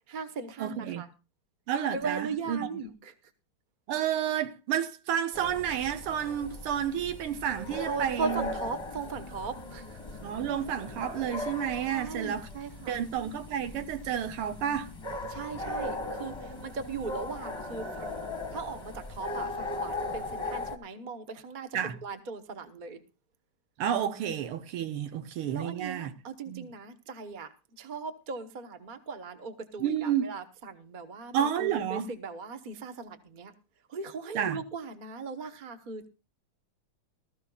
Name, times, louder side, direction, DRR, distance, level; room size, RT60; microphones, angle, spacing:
voice 1, 0.1-1.1 1.9-3.1 7.9-10.2 11.9-13.0 15.3-18.2 18.5-21.7 22.0-23.0 25.5-27.5 27.8-33.5 33.9-36.1, right 4 dB, 35° right, 0.8 m, -38 dB
voice 2, 0.6-1.0 1.7-2.7 3.9-8.5 10.2-12.5 12.9-14.9 21.7-22.0 23.8-26.1 26.5-26.7 29.8-30.3 31.3-32.1 34.4-34.6, right 9 dB, 85° right, 1.8 m, -30 dB
sound 1, 5.3-20.8, left 2 dB, 15° left, 1.0 m, -38 dB
19.5 x 13.5 x 2.4 m
omnidirectional pair, 2.4 m